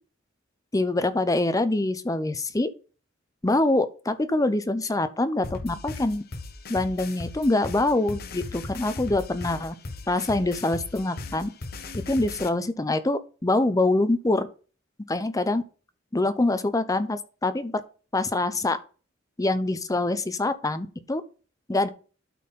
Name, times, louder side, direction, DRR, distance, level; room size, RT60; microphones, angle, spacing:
voice 1, 0.7-2.7 3.4-6.2 6.7-9.7 10.1-11.5 12.1-14.5 15.1-15.6 16.1-17.8 18.1-18.8 19.4-21.2 21.7-21.9, left 2 dB, 20° left, 0.6 m, -25 dB
sound 1, 5.4-12.5, left 3 dB, 55° left, 0.9 m, -38 dB
12.0 x 4.3 x 3.7 m
head